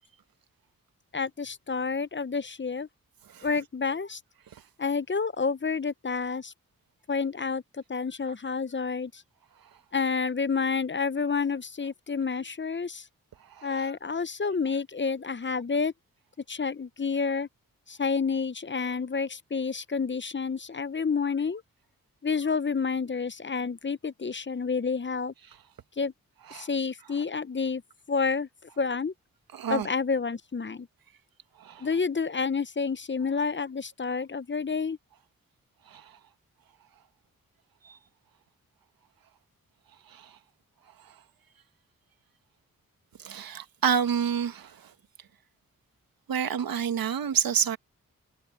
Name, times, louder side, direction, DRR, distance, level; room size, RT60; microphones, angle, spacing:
voice 1, 1.1-2.9 3.4-4.2 4.8-6.5 7.1-9.2 9.9-13.1 13.6-15.9 16.5-17.5 17.9-21.6 22.2-25.3 26.0-26.1 26.5-27.8 28.1-29.1 29.7-30.9 31.8-35.0, left 5 dB, 35° left, 0.8 m, -29 dB
voice 2, 13.5-13.9 26.5-26.7 29.5-29.9 31.6-31.9 35.9-36.1 37.8-38.0 40.1-40.4 43.2-44.9 46.3-47.8, right 8 dB, 85° right, 1.5 m, -29 dB
cardioid pair, 45°, 34 cm